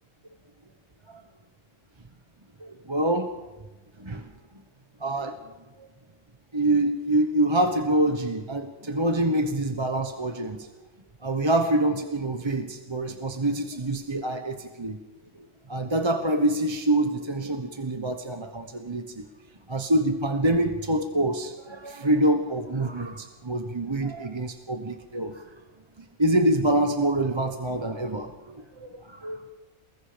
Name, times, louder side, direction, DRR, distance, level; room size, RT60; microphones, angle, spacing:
voice 1, 2.6-3.3 4.0-4.3 5.0-5.4 5.8-5.9 6.5-10.7 11.2-15.0 15.7-19.3 19.7-25.4 26.0-29.4, right 1 dB, 25° right, 6 dB, 1.1 m, -26 dB
28.5 x 21.0 x 5.2 m, 1.1 s
omnidirectional pair, 1.3 m